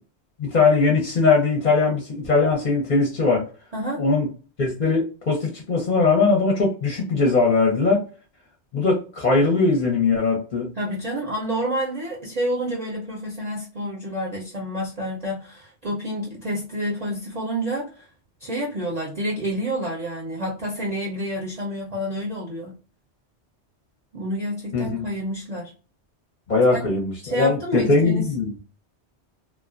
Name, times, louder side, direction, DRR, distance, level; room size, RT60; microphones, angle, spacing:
voice 1, 0.4-3.4 4.0-4.3 4.6-8.0 8.7-10.7 24.7-25.1 26.5-28.5, left 3 dB, 45° left, 0 dB, 0.8 m, -20 dB
voice 2, 3.7-4.0 10.8-18.1 18.4-22.8 24.1-25.7 26.7-26.8 27.2-28.2, equal, 40° right, -4 dB, 0.7 m, -29 dB
2.4 x 2.1 x 2.4 m, 0.36 s
omnidirectional pair, 1.2 m